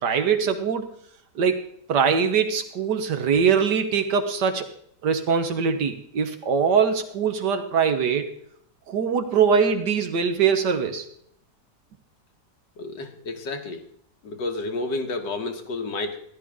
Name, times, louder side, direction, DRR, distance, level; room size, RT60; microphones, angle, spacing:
voice 1, 0.0-0.9 1.4-1.6 1.9-4.7 5.0-8.3 8.9-11.1, right 6 dB, 70° right, 7 dB, 1.7 m, -22 dB
voice 2, 12.8-13.8 14.2-16.2, left 2 dB, 85° left, 4 dB, 2.0 m, -30 dB
14.5 x 11.5 x 3.7 m, 0.66 s
omnidirectional pair, 1.9 m